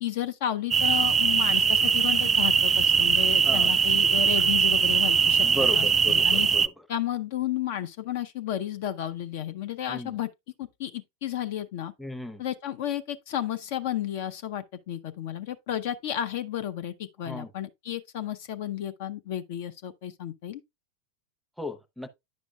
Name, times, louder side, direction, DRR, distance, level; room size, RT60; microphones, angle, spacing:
voice 1, 0.0-5.5 5.7-6.5 6.9-10.3 10.6-11.9 12.4-20.6, left 11 dB, 50° left, 0.5 m, -32 dB
sound 1, 0.7-6.7, right 6 dB, 20° right, 0.3 m, -21 dB
voice 2, 5.4-6.7 9.9-10.1 12.0-12.4 17.2-17.5 21.6-22.1, left 1 dB, ahead, 0.7 m, -35 dB
9.6 x 6.1 x 2.3 m
figure-of-eight pair, 90°, 0 cm